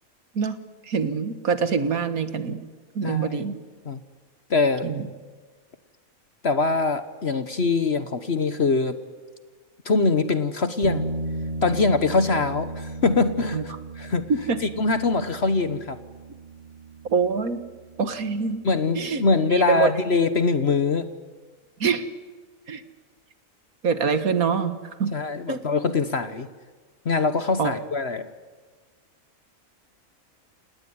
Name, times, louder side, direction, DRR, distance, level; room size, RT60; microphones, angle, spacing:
voice 1, 0.8-2.6 3.0-3.6 4.8-5.1 13.5-13.6 14.3-14.6 17.1-17.6 18.0-18.6 18.9-19.2 19.5-19.9 21.8-22.0 22.7-22.8 23.8-25.1 25.5-25.6 27.6-27.7, right 5 dB, 80° right, 11 dB, 2.0 m, -24 dB
voice 2, 3.0-3.4 3.8-4.0 4.5-4.9 6.4-9.0 9.8-11.0 11.6-14.3 14.8-16.0 18.6-21.1 25.1-26.5 27.0-28.2, left 3 dB, 50° left, 11 dB, 1.3 m, -23 dB
sound 1, 10.8-20.3, right 2 dB, 40° right, 2.7 m, -36 dB
29.0 x 18.5 x 9.6 m, 1.4 s
omnidirectional pair, 1.5 m